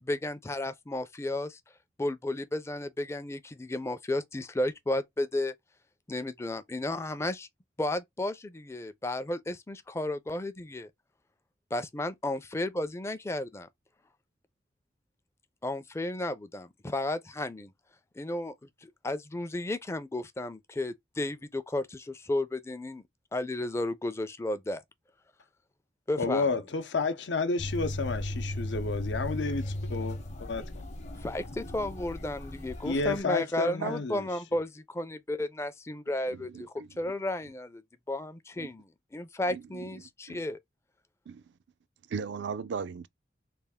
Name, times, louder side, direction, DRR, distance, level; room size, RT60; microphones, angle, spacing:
voice 1, 0.0-1.6 2.0-5.5 6.1-7.5 7.8-10.9 11.7-13.7 15.6-17.7 18.2-18.5 18.8-23.0 23.3-24.8 26.1-26.5 31.2-37.8 38.1-40.6, left 1 dB, 15° left, 0.4 m, -33 dB
voice 2, 26.2-30.8 32.8-34.3, left 3 dB, 75° left, 0.6 m, -31 dB
sound 1, 27.6-33.2, left 1 dB, 40° left, 0.8 m, -36 dB
voice 3, 36.3-36.9 38.6-38.7 39.5-39.8 40.3-40.4 41.3-41.4 42.1-43.1, right 5 dB, 70° right, 0.4 m, -37 dB
3.3 x 2.4 x 3.5 m
head